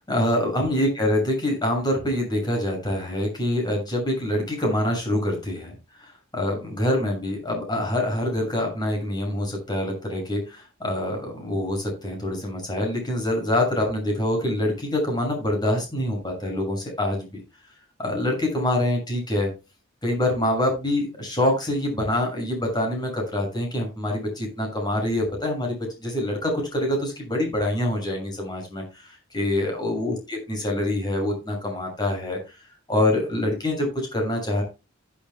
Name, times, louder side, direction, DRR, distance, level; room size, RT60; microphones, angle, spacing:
voice 1, 0.1-17.3 18.0-19.5 20.0-32.4 32.9-34.6, left 1 dB, 20° left, 1 dB, 6.6 m, -25 dB
16.5 x 8.6 x 2.2 m, 0.27 s
head